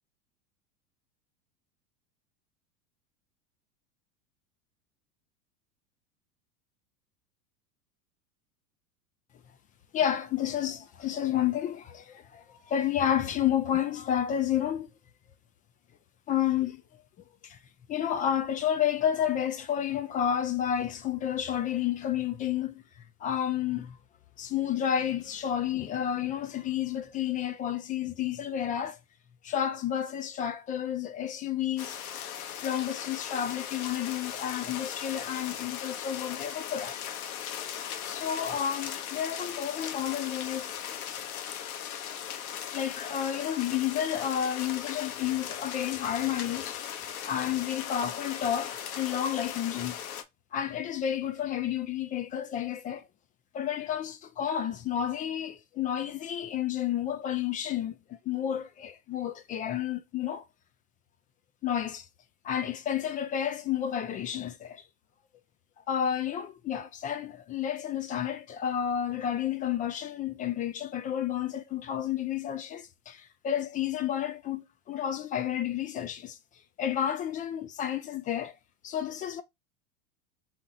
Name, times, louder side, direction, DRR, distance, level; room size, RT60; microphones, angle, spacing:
voice 1, 9.9-14.9 16.3-16.8 17.4-17.6 17.9-22.8 23.2-24.0 24.4-29.0 29.4-32.0 32.6-37.0 38.0-41.3 42.7-46.8 47.2-50.0 50.5-53.0 53.5-60.4 61.6-62.1 62.4-64.8 65.9-76.4 76.8-78.6 78.8-79.4, left 10 dB, 20° left, 0.3 m, -31 dB
sound 1, 31.8-50.2, left 9 dB, 70° left, 1.1 m, -38 dB
3.7 x 2.9 x 3.8 m
hypercardioid pair, 95°, 45 cm